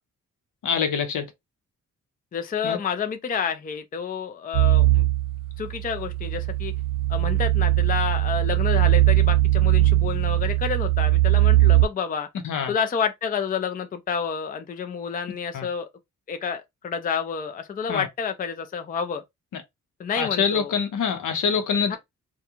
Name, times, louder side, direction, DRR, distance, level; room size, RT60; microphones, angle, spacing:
voice 1, 0.6-1.3 2.6-2.8 12.4-12.7 15.5-15.7 17.9-18.1 19.5-19.6 20.2-22.0, left 6 dB, 75° left, 0.8 m, -25 dB
voice 2, 2.3-5.1 5.6-6.7 7.1-12.3 12.7-15.9 16.3-19.2 20.0-20.7 21.9-22.0, left 6 dB, 25° left, 0.4 m, -29 dB
sound 1, 4.5-11.8, right 15 dB, 85° right, 0.7 m, -20 dB
2.4 x 2.3 x 2.9 m
cardioid pair, 105°, 32 cm